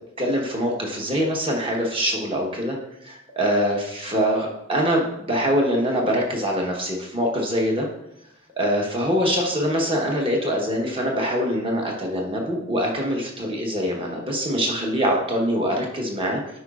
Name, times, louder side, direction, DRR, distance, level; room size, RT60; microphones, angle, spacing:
voice 1, 0.2-2.8 3.0-7.9 8.6-16.4, equal, 25° right, 0 dB, 1.1 m, -24 dB
11.0 x 5.0 x 2.4 m, 0.83 s
head